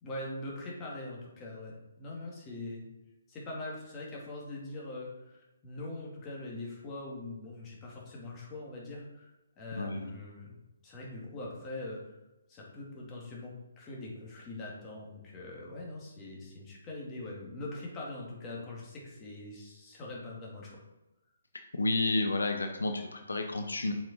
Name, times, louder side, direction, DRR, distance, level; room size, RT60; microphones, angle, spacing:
voice 1, 0.0-2.8 3.3-9.3 9.6-10.6 10.8-12.1 12.5-20.8, left 2 dB, 20° left, -3 dB, 2.1 m, -42 dB
voice 2, 9.8-10.1 21.7-23.9, left 2 dB, 75° left, 5 dB, 0.8 m, -31 dB
7.4 x 5.0 x 4.1 m, 1.0 s
figure-of-eight pair, 140°, 0 cm